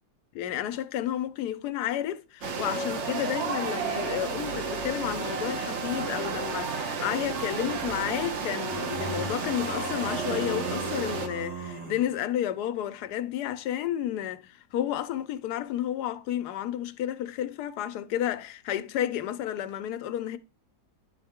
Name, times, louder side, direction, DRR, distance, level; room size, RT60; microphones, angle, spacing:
voice 1, 0.3-20.4, left 11 dB, 80° left, 1.2 m, -31 dB
sound 1, 2.4-11.3, right 5 dB, 55° right, 1.0 m, -32 dB
sound 2, 6.1-6.6 8.7-12.2, right 2 dB, 85° right, 2.3 m, -37 dB
10.5 x 3.9 x 3.6 m
omnidirectional pair, 1.7 m